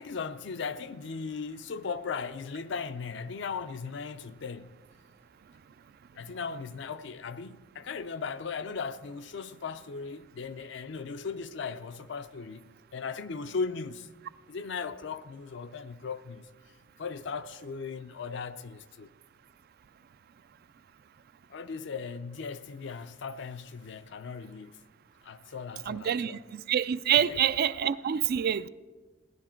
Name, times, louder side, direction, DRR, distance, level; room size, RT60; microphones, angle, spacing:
voice 1, 0.0-4.7 6.1-12.6 12.9-14.1 14.5-16.5 17.0-19.1 21.5-24.8 25.2-26.4 27.1-27.4, left 5 dB, 65° left, 0.5 m, -37 dB
voice 2, 25.9-28.7, right 9 dB, 50° right, 0.3 m, -27 dB
17.5 x 10.5 x 4.4 m
head